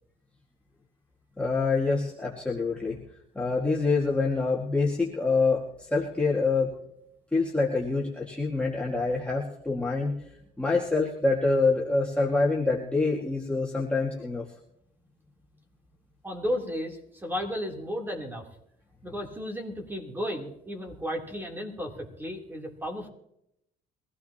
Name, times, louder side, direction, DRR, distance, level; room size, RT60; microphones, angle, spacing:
voice 1, 1.4-3.0 3.4-6.7 7.3-10.1 10.6-14.5, left 3 dB, 5° left, -4 dB, 1.9 m, -26 dB
voice 2, 16.2-18.4 19.0-23.1, equal, 10° right, 0 dB, 3.2 m, -34 dB
23.0 x 15.5 x 2.9 m, 0.78 s
cardioid pair, 110°, 17 cm